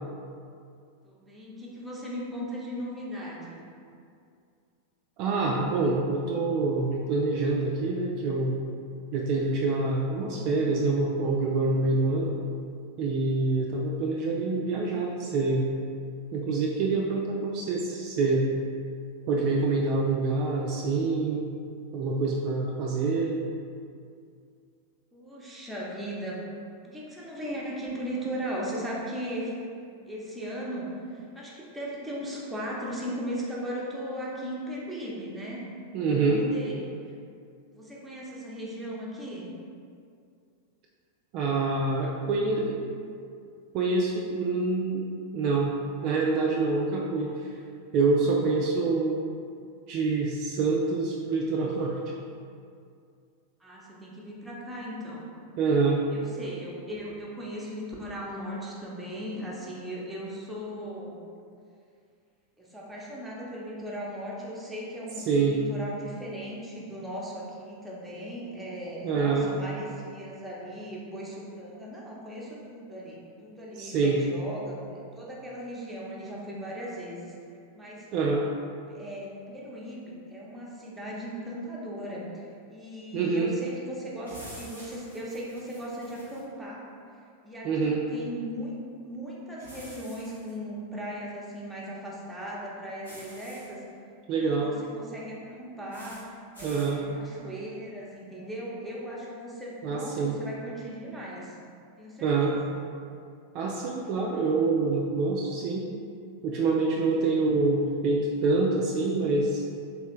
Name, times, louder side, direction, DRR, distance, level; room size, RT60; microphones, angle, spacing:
voice 1, 1.0-3.6 25.1-26.4 26.8-29.5 29.9-35.7 36.1-36.9 37.7-39.5 53.6-55.3 56.1-61.2 62.6-78.1 78.9-86.9 87.4-88.7 89.0-93.8 94.4-101.6 102.0-102.7, equal, 5° right, -6 dB, 0.8 m, -38 dB
voice 2, 5.2-8.6 9.1-12.4 13.0-15.7 16.3-18.5 19.3-21.5 21.9-23.4 35.9-36.4 41.3-42.8 43.7-45.1 45.3-45.8 46.0-47.5 47.9-49.2 49.9-52.0 55.6-56.0 65.3-65.6 69.0-69.5 73.8-74.2 78.1-78.5 83.1-83.6 87.6-88.0 94.3-94.7 96.6-97.0 99.8-100.4 102.2-102.5 103.5-105.9 106.4-109.6, right 3 dB, 40° right, -2 dB, 0.3 m, -26 dB
sound 1, 84.2-86.4 89.6-90.5 93.0-93.7 95.9-96.2 96.5-96.9, equal, 80° left, 1.1 m, -47 dB
3.3 x 3.2 x 3.0 m, 2.3 s
figure-of-eight pair, 90°, 0 cm